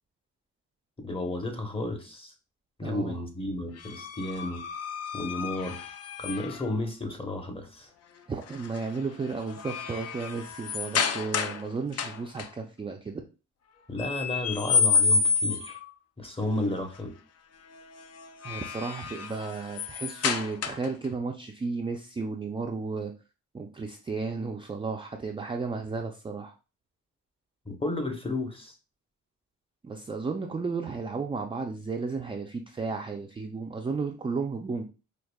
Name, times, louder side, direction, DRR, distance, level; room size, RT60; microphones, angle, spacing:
voice 1, 1.0-2.3 2.8-4.6 5.1-5.9 6.2-7.9 13.9-15.8 16.2-17.1 27.7-28.7, left 2 dB, 15° left, 4 dB, 0.8 m, -32 dB
voice 2, 2.8-3.2 8.3-13.2 18.4-23.1 23.5-26.5 29.8-34.8, right 4 dB, 15° right, 2 dB, 0.4 m, -33 dB
sound 1, 3.8-6.7 8.5-8.8 9.2-11.6 11.9-12.5 14.0-15.9 18.2-21.0, left 5 dB, 50° left, 0.5 m, -29 dB
4.8 x 2.3 x 2.2 m, 0.32 s
cardioid pair, 80°, 31 cm